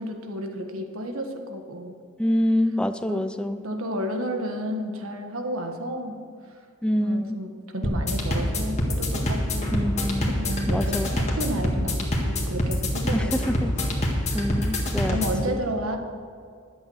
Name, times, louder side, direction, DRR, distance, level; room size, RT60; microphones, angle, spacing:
voice 1, 0.0-2.0 3.1-3.2 3.6-6.2 6.9-9.8 10.2-13.5 15.0-16.0, equal, 70° right, 4 dB, 1.4 m, -32 dB
voice 2, 2.2-3.6 6.8-7.4 9.7-10.3 10.7-11.1 13.1-13.7 14.3-15.2, left 1 dB, 5° left, 10 dB, 0.4 m, -25 dB
sound 1, 7.8-15.5, left 1 dB, 30° left, 1.8 m, -26 dB
11.0 x 8.6 x 6.3 m, 2.2 s
head